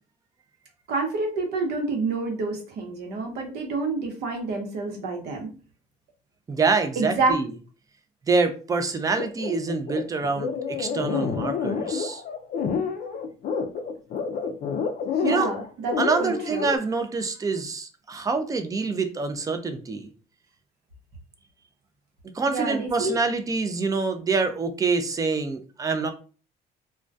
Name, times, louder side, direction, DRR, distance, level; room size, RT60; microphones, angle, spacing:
voice 1, 0.9-5.5 7.0-7.3 15.2-16.7 22.5-23.2, right 3 dB, 75° right, 2 dB, 0.8 m, -28 dB
voice 2, 6.5-7.5 8.3-12.2 15.2-15.5 16.0-20.1 22.3-26.1, right 4 dB, 20° right, 8 dB, 0.4 m, -26 dB
sound 1, 9.2-16.8, left 6 dB, 55° left, 0.4 m, -29 dB
2.2 x 2.2 x 2.5 m, 0.36 s
cardioid pair, 110°, 17 cm